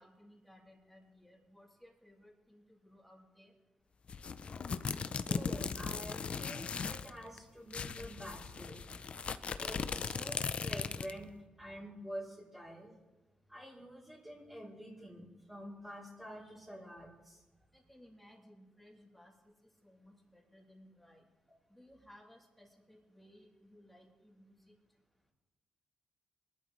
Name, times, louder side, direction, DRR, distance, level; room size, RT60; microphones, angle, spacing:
voice 1, 0.0-3.5 17.7-19.5 19.8-21.3 21.7-24.7, left 1 dB, 5° left, -1 dB, 3.3 m, -60 dB
sound 1, 4.1-7.1 7.4-7.5 7.7-11.2, left 5 dB, 50° left, 0.6 m, -38 dB
voice 2, 5.3-9.0 9.6-12.9 13.5-17.4, equal, 10° right, -6 dB, 3.4 m, -48 dB
20.5 x 12.0 x 3.2 m, 1.1 s
cardioid pair, 75°, 3 cm